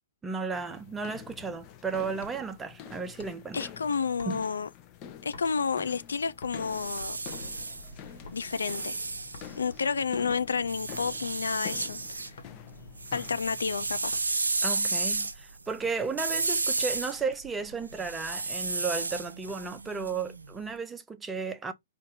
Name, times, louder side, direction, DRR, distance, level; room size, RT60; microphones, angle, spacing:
voice 1, 0.2-3.7 4.3-4.4 14.6-21.7, right 5 dB, 10° right, 0.6 m, -34 dB
sound 1, 0.5-14.0, left 9 dB, 30° left, 0.7 m, -47 dB
sound 2, 1.3-1.6 2.2-2.6 3.2-3.6 4.2-4.7 5.3-5.7 6.4-6.8 7.1-7.5 8.3-8.5 9.3-9.7 10.3-10.7 11.2-12.6 13.2-13.4 14.1-14.4 15.0-16.1 16.8-17.0 17.4-17.5 17.7-18.1 18.9-19.6 20.0-20.3, left 3 dB, 55° left, 1.4 m, -51 dB
voice 2, 3.5-4.7 5.2-7.2 8.3-9.0 9.6-12.2 13.1-14.2, left 5 dB, 70° left, 0.4 m, -30 dB
sound 3, 6.5-10.0 10.7-12.3 12.7-20.6, right 3 dB, 80° right, 0.5 m, -33 dB
5.1 x 2.5 x 4.0 m
figure-of-eight pair, 110°, 0 cm